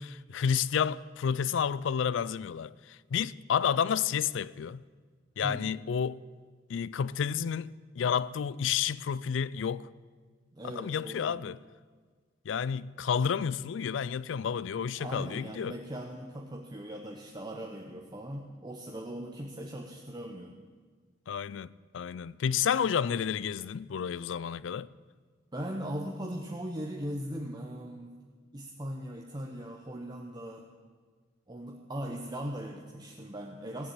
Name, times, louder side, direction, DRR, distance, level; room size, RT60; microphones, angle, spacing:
voice 1, 0.0-4.8 5.4-6.2 6.7-9.9 10.6-11.6 12.5-15.7 21.3-24.9, left 7 dB, 70° left, 0.4 m, -30 dB
voice 2, 5.4-5.7 10.5-11.4 15.0-20.5 25.5-28.2 28.5-30.6 31.5-33.9, equal, 20° right, 0.9 m, -39 dB
16.0 x 7.4 x 8.8 m
head